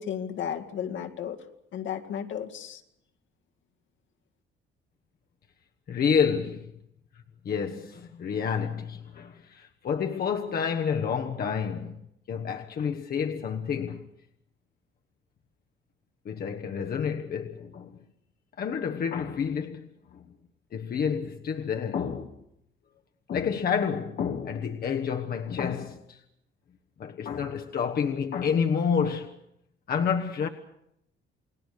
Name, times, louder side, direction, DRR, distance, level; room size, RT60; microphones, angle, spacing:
voice 1, 0.0-1.4 1.7-2.8, left 9 dB, 75° left, 2.2 m, -34 dB
voice 2, 5.9-6.7 7.4-14.0 16.2-17.9 18.6-20.2 20.7-22.3 23.3-26.2 27.0-29.4 29.9-30.5, left 7 dB, 50° left, 1.2 m, -29 dB
29.0 x 19.0 x 6.7 m
cardioid pair, 135°, 20 cm